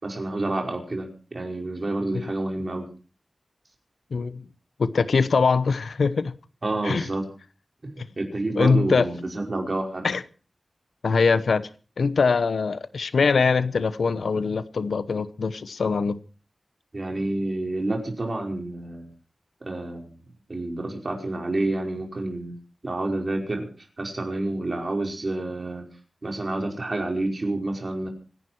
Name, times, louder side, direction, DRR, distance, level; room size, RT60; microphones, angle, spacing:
voice 1, 0.0-2.9 6.6-7.3 7.8-10.1 16.9-19.1 19.6-20.2 20.5-22.5 22.8-23.7 24.0-25.8 26.2-28.1, right 2 dB, 50° right, 5.3 m, -29 dB
voice 2, 4.1-4.4 4.8-6.3 6.8-7.1 8.0-8.1 8.6-9.1 10.0-10.2 11.0-11.6 12.0-16.2, left 4 dB, 90° left, 0.9 m, -22 dB
26.0 x 11.0 x 4.5 m
wide cardioid pair, 60°, 0 cm